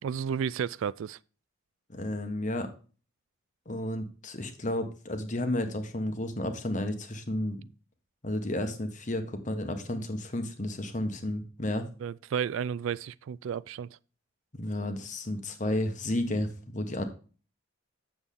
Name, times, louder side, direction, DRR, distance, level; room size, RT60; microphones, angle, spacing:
voice 1, 0.0-1.2 12.0-13.9, right 7 dB, 70° right, 0.3 m, -32 dB
voice 2, 1.9-2.7 3.7-7.6 8.2-11.8 14.5-17.1, left 1 dB, 35° left, 1.2 m, -32 dB
8.4 x 7.1 x 3.7 m
head